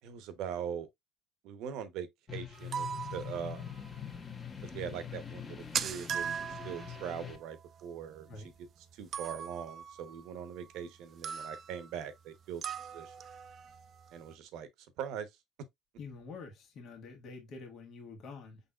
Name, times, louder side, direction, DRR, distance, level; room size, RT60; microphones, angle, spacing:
voice 1, 0.0-0.9 1.4-3.8 4.6-8.5 8.9-12.6 12.9-13.1 14.1-15.3, right 8 dB, 70° right, 0.9 m, -41 dB
sound 1, 2.3-7.4, left 8 dB, 30° left, 1.3 m, -44 dB
sound 2, 2.5-4.0 4.3-4.4 4.7-4.8 4.9-5.0 5.2-8.6 9.1-10.9 11.2-11.9 12.6-14.3, right 8 dB, 50° right, 0.4 m, -40 dB
voice 2, 16.0-18.6, left 4 dB, 55° left, 1.7 m, -47 dB
5.2 x 3.9 x 2.3 m
hypercardioid pair, 75°, 0 cm